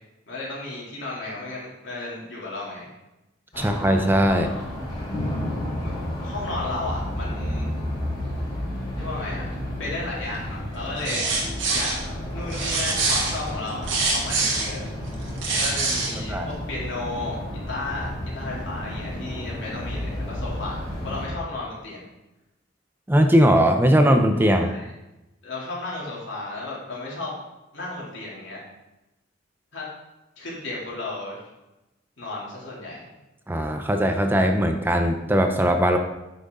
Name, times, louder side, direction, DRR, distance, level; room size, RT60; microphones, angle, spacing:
voice 1, 0.3-2.9 3.5-3.8 4.3-4.7 5.8-5.9 6.2-7.7 9.0-11.3 11.7-11.9 12.3-14.8 15.6-22.1 24.5-24.9 25.4-27.3 27.7-28.6 29.7-29.8 30.4-31.4 32.2-33.1, left 2 dB, 70° left, -5 dB, 3.1 m, -34 dB
sound 1, 3.5-21.3, left 1 dB, 30° left, 3.2 m, -32 dB
voice 2, 3.6-4.5 16.3-16.5 23.1-24.7 33.5-36.0, equal, 10° right, 5 dB, 0.5 m, -19 dB
sound 2, 11.0-12.0 12.5-14.7 15.2-16.1, right 3 dB, 80° right, 2.0 m, -24 dB
9.2 x 6.1 x 3.8 m, 0.98 s
head